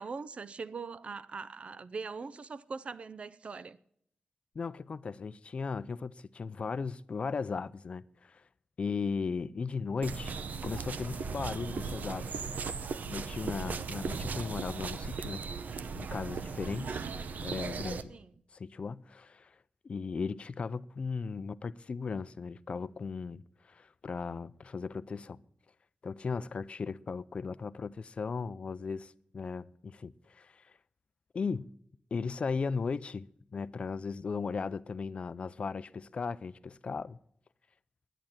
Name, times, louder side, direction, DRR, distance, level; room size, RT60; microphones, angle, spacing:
voice 1, 0.0-3.8 18.1-18.3, right 4 dB, 45° right, 0.6 m, -41 dB
voice 2, 4.5-8.4 8.8-10.4 10.6-12.4 13.1-15.4 15.9-17.1 17.4-18.2 18.5-19.6 19.8-25.4 26.0-30.8 31.3-31.7 32.1-33.3 33.5-37.2, left 5 dB, 45° left, 0.4 m, -37 dB
sound 1, 10.0-18.0, right 5 dB, 85° right, 0.8 m, -37 dB
11.0 x 10.0 x 7.4 m
wide cardioid pair, 180°, 3 cm